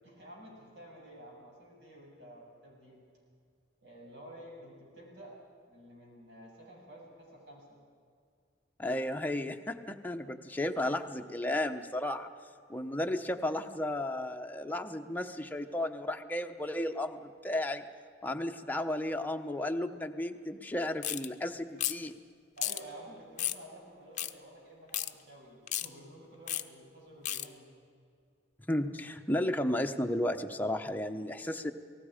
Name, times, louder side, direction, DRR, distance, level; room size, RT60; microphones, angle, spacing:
voice 1, 0.0-3.0 3.8-5.4 5.7-7.8 21.6-21.8 22.6-27.7, right 1 dB, 70° right, -2 dB, 7.2 m, -51 dB
voice 2, 8.8-12.3 12.7-17.9 18.2-22.2 28.7-31.7, left 1 dB, 10° left, 5 dB, 0.9 m, -33 dB
sound 1, 21.0-21.3 21.8-22.1 22.6-22.8 23.4-23.6 24.2-24.3 24.9-25.1 25.7-25.9 26.5-26.6 27.3-27.5, left 12 dB, 45° left, 0.7 m, -33 dB
28.5 x 19.0 x 5.1 m, 2.2 s
head